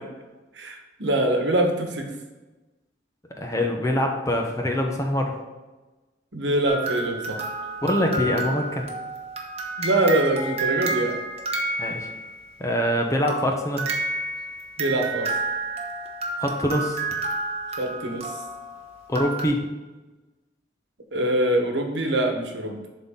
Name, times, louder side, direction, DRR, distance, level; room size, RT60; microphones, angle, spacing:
voice 1, 0.5-2.1 6.3-7.4 9.8-11.2 14.8-15.3 17.8-18.3 21.1-22.8, right 1 dB, 75° right, 3 dB, 1.2 m, -24 dB
voice 2, 3.4-5.4 7.8-8.8 11.8-12.1 12.6-13.9 16.4-17.0 19.1-19.6, left 1 dB, 15° left, 2 dB, 0.8 m, -24 dB
sound 1, 6.7-12.4 13.3-19.4, right 2 dB, 35° right, 1.0 m, -30 dB
11.0 x 4.1 x 3.7 m, 1.2 s
head